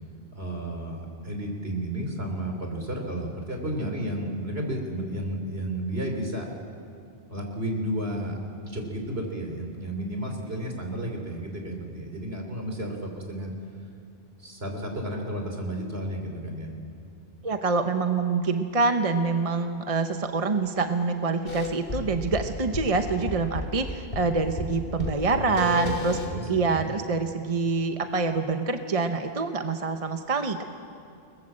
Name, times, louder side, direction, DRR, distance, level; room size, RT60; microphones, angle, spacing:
voice 1, 0.3-6.5 7.3-13.5 14.4-16.7 25.2-26.9, right 1 dB, 70° right, 2 dB, 3.9 m, -32 dB
voice 2, 17.4-26.2 26.5-30.6, right 4 dB, 35° right, 7 dB, 1.0 m, -26 dB
sound 1, 21.5-26.9, left 2 dB, 60° left, 2.5 m, -34 dB
29.0 x 20.5 x 7.6 m, 2.5 s
omnidirectional pair, 1.1 m